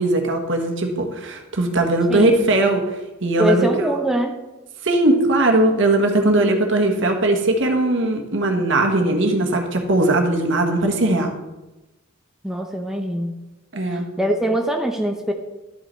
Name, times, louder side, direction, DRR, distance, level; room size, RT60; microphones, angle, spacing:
voice 1, 0.0-4.0 4.8-11.4 13.7-14.0, right 2 dB, 60° right, 3 dB, 1.3 m, -19 dB
voice 2, 2.1-2.5 3.4-4.4 12.4-13.4 13.8-15.3, right 1 dB, ahead, 2 dB, 0.6 m, -23 dB
12.0 x 5.6 x 4.3 m, 1.0 s
head